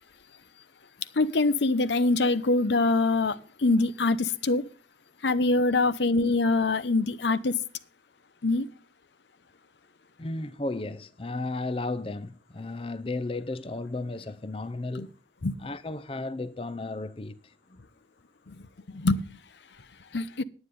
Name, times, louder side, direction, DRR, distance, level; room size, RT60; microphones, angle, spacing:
voice 1, 1.1-4.6 5.2-7.6 8.4-8.7 15.0-15.1 15.4-15.6 18.5-18.6 18.9-19.2 20.1-20.4, left 3 dB, 85° left, 0.8 m, -24 dB
voice 2, 10.2-15.1 15.6-17.8, left 2 dB, 30° left, 0.5 m, -34 dB
9.8 x 9.7 x 5.2 m
head